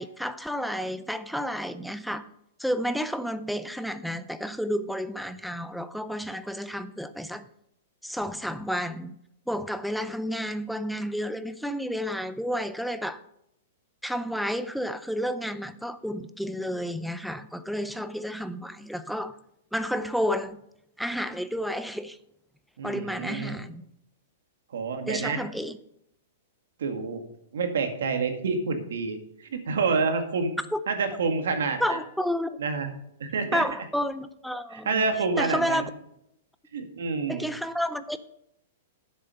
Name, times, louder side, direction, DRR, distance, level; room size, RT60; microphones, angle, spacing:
voice 1, 0.0-2.3 2.6-7.4 8.0-9.2 9.5-13.2 14.0-19.3 19.7-20.6 21.0-22.2 22.8-23.8 25.1-25.8 30.7-30.8 31.8-32.6 33.5-35.0 35.4-35.8 37.3-38.2, equal, ahead, 11 dB, 0.5 m, -31 dB
voice 2, 22.8-23.6 24.7-25.4 26.8-27.2 27.5-30.5 30.9-32.0 32.6-32.9 33.2-33.6 34.7-35.9 36.7-37.4, right 4 dB, 85° right, 7 dB, 1.9 m, -28 dB
9.9 x 7.5 x 5.7 m, 0.78 s
hypercardioid pair, 155°, 0 cm